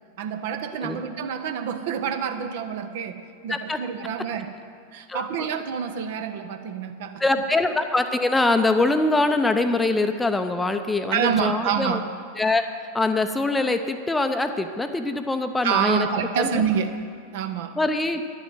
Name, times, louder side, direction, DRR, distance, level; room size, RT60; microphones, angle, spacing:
voice 1, 0.2-4.5 4.9-7.2 11.1-12.1 15.6-16.9 17.3-17.8, right 7 dB, 55° right, 8 dB, 0.8 m, -27 dB
voice 2, 5.1-5.5 7.2-12.0 12.4-12.6 12.9-16.1 16.4-16.6 17.8-18.2, left 2 dB, 10° left, 8 dB, 0.6 m, -23 dB
11.0 x 7.1 x 7.8 m, 2.2 s
figure-of-eight pair, 90°, 0 cm